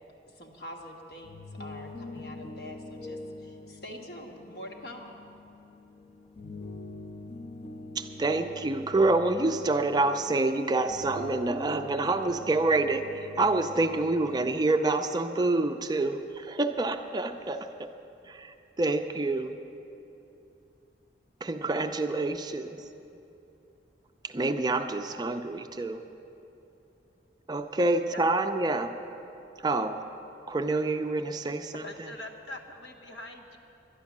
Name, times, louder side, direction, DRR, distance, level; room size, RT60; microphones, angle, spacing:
voice 1, 0.3-5.2, equal, 60° left, 1 dB, 1.4 m, -45 dB
sound 1, 1.1-14.5, left 1 dB, 30° left, 0.6 m, -44 dB
voice 2, 8.0-17.9 18.2-19.6 21.4-22.8 24.2-26.0 27.5-28.9 29.6-30.0 30.5-32.1, right 2 dB, 25° right, 7 dB, 0.4 m, -27 dB
voice 3, 31.8-33.6, left 2 dB, 90° left, 1 dB, 1.2 m, -43 dB
11.5 x 10.5 x 7.2 m, 2.8 s
head